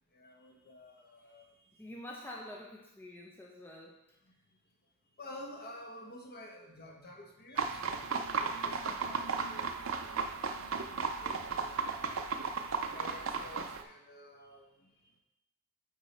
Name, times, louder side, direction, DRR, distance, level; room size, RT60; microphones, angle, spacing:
voice 1, 0.1-1.9 4.2-4.3 5.2-8.1 8.3-10.2 11.1-15.1, left 1 dB, 45° left, 1 dB, 1.1 m, -51 dB
voice 2, 1.8-4.0, left 1 dB, 10° left, -2 dB, 0.6 m, -47 dB
sound 1, 7.6-13.8, right 5 dB, 65° right, 0.5 m, -35 dB
8.5 x 3.7 x 4.3 m, 0.84 s
head